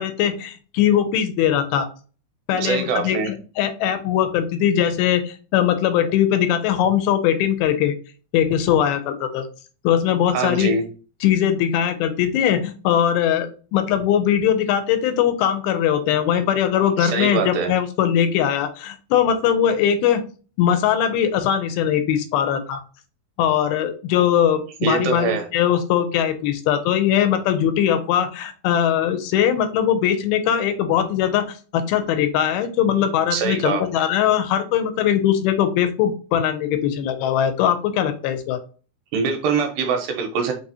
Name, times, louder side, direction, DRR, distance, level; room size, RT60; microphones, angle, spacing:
voice 1, 0.0-1.9 2.5-7.9 8.3-9.5 9.8-10.7 11.2-20.2 20.6-22.8 23.4-38.6, left 9 dB, 80° left, 9 dB, 2.4 m, -20 dB
voice 2, 2.5-3.3 10.3-10.8 17.0-17.7 24.8-25.4 33.3-33.8 39.1-40.5, right 5 dB, 80° right, 4 dB, 2.3 m, -23 dB
6.0 x 2.8 x 2.7 m, 0.37 s
omnidirectional pair, 4.4 m